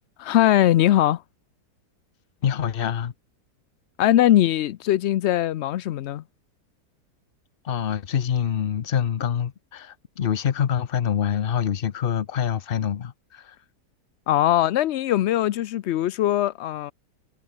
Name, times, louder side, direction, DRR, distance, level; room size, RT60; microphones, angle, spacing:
voice 1, 0.2-1.2 4.0-6.2 14.3-16.9, left 13 dB, 90° left, 0.5 m, -21 dB
voice 2, 2.4-3.1 7.6-13.5, left 8 dB, 45° left, 0.8 m, -25 dB
omnidirectional pair, 1.7 m